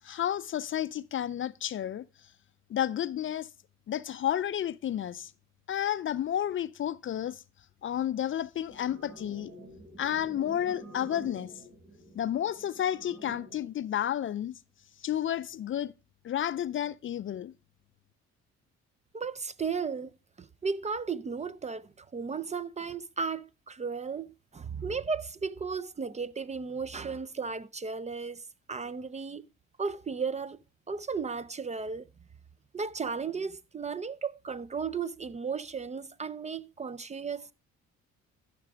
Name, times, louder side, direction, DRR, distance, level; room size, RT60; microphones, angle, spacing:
voice 1, 0.0-2.0 2.7-3.5 3.9-5.3 5.7-7.4 7.8-9.5 10.0-11.5 12.2-14.5 15.0-15.9 16.2-17.5, left 10 dB, 45° left, 0.4 m, -31 dB
sound 1, 8.7-13.7, equal, 75° right, 5.1 m, -49 dB
voice 2, 19.1-20.1 20.4-28.4 28.7-29.5 29.8-30.6 30.9-32.1 32.7-37.5, right 5 dB, 25° right, 0.4 m, -35 dB
13.0 x 5.9 x 3.3 m
cardioid pair, 90°, 30 cm